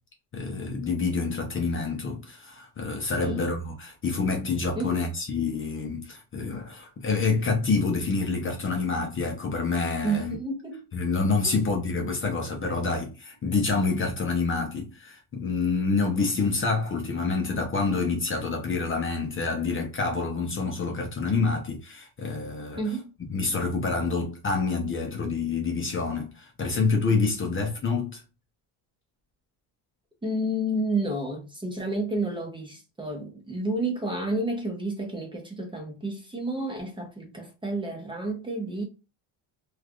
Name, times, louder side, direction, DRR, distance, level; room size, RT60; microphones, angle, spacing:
voice 1, 0.3-10.3 10.9-22.9 23.3-28.2, left 4 dB, 30° left, 0.6 m, -27 dB
voice 2, 3.2-3.5 4.7-5.0 10.0-10.9 11.4-11.6 22.8-23.1 30.2-38.8, right 2 dB, 10° right, 0.8 m, -30 dB
3.1 x 2.4 x 2.4 m
cardioid pair, 120°, 44 cm